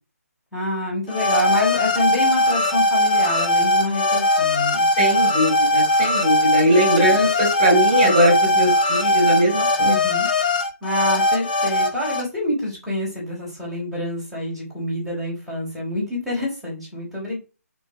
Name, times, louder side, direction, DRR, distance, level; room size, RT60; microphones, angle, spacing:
voice 1, 0.5-4.9 7.1-7.3 9.8-10.3 10.8-17.4, left 1 dB, ahead, -8 dB, 4.0 m, -27 dB
sound 1, 1.1-12.2, left 1 dB, 30° left, 1.8 m, -20 dB
voice 2, 4.9-10.0, right 1 dB, 30° right, 3 dB, 4.8 m, -20 dB
9.3 x 5.3 x 5.0 m, 0.31 s
hypercardioid pair, 170°, 9 cm